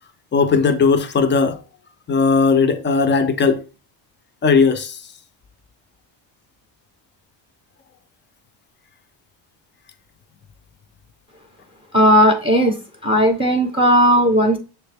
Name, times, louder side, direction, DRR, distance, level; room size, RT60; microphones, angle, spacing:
voice 1, 0.3-1.6 2.1-3.6 4.4-5.0, left 5 dB, 25° left, 0.4 m, -17 dB
voice 2, 11.9-12.7 13.0-14.6, equal, 10° right, 0.7 m, -15 dB
6.4 x 2.2 x 3.2 m
cardioid pair, 105°, 50 cm